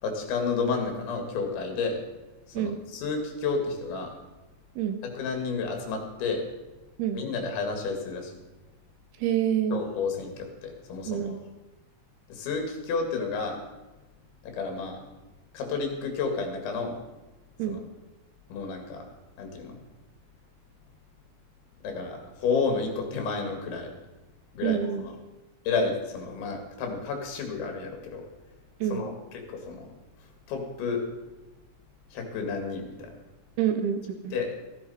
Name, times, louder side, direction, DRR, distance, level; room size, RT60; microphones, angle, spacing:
voice 1, 0.0-2.0 2.5-4.1 5.1-6.4 7.1-8.3 9.7-11.3 12.3-13.6 14.4-15.0 15.5-17.0 17.7-17.8 18.5-19.0 19.4-19.8 21.8-23.9 24.5-25.1 25.7-28.3 28.9-29.9 30.5-31.0 32.1-33.1 34.3-34.6, left 4 dB, 80° left, 3 dB, 4.3 m, -31 dB
voice 2, 9.2-9.8 11.1-11.4 17.6-17.8 24.6-25.0 28.8-29.0 33.6-34.4, right 9 dB, 75° right, 8 dB, 2.4 m, -27 dB
14.0 x 13.0 x 4.3 m, 1.1 s
omnidirectional pair, 5.2 m